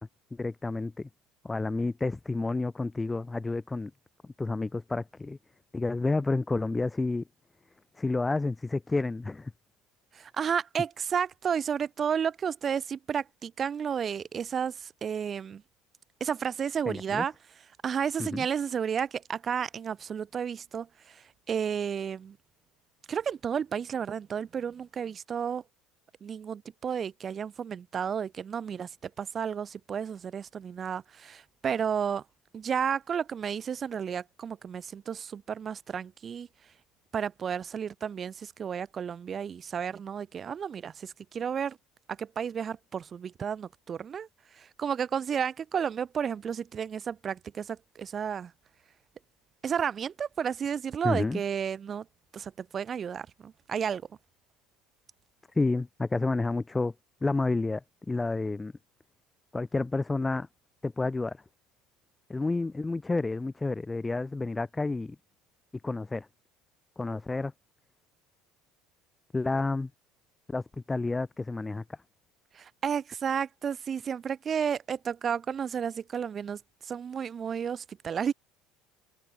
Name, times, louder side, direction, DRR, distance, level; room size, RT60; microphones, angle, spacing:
voice 1, 0.3-1.1 1.4-3.9 4.4-5.4 5.7-7.2 8.0-9.5 16.9-17.2 18.2-18.5 51.0-51.4 55.5-56.9 57.2-57.8 58.1-58.7 59.5-60.5 60.8-61.4 62.3-65.2 65.8-66.3 67.0-67.5 69.3-69.9 70.5-70.6 70.9-72.0, left 3 dB, 15° left, 1.2 m, -30 dB
voice 2, 10.1-15.6 16.2-17.3 17.8-22.4 23.1-25.6 26.2-32.2 32.5-36.5 37.1-41.8 42.2-44.3 44.5-48.5 49.6-52.1 52.3-54.0 72.5-78.3, right 7 dB, 35° right, 1.7 m, -32 dB
open air
supercardioid pair, 100°, 0 cm